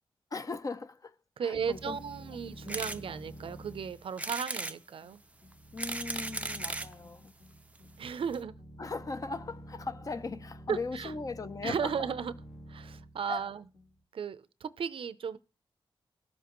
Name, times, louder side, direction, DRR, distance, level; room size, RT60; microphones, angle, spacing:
voice 1, 0.3-2.0 2.6-2.8 5.7-7.3 8.8-12.0 13.3-13.5, left 4 dB, 40° left, 0.5 m, -39 dB
voice 2, 1.4-5.2 8.0-8.6 10.7-11.1 11.6-12.3 12.7-13.6 14.1-15.4, right 7 dB, 80° right, 0.5 m, -35 dB
sound 1, 1.5-14.0, equal, 60° left, 1.6 m, -49 dB
sound 2, 2.7-3.0 3.5-3.6 4.2-4.8 5.5-6.9 7.8-7.9 8.0-8.1 8.3-8.4, right 2 dB, 15° right, 0.4 m, -36 dB
19.5 x 7.2 x 3.0 m
wide cardioid pair, 140°, 9 cm